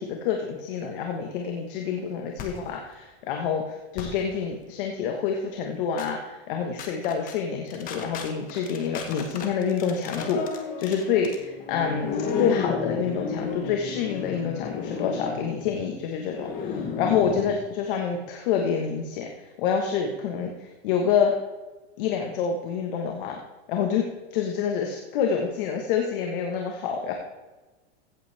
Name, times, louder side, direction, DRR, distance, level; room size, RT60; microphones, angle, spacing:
voice 1, 0.0-21.3 22.0-23.4 23.7-24.1 24.3-27.1, left 7 dB, 55° left, 2 dB, 1.5 m, -27 dB
sound 1, 2.4-2.7 4.0-4.3 6.0-6.1 6.8-7.4 7.7-17.6, left 6 dB, 25° left, 1.2 m, -33 dB
16.0 x 8.5 x 3.5 m, 1.2 s
supercardioid pair, 155°, 33 cm